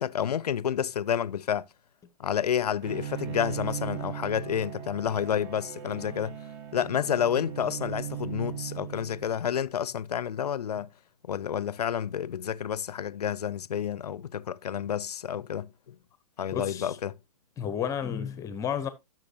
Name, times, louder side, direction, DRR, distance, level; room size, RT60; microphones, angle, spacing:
voice 1, 0.0-1.7 2.2-6.4 6.7-10.9 11.2-16.0 16.4-17.2, left 9 dB, 80° left, 0.5 m, -30 dB
Bowed string instrument, 2.8-9.5, right 11 dB, 40° right, 1.8 m, -38 dB
voice 2, 16.5-17.0 17.6-18.9, left 8 dB, 15° left, 0.7 m, -31 dB
12.5 x 6.0 x 2.8 m
hypercardioid pair, 135°, 20 cm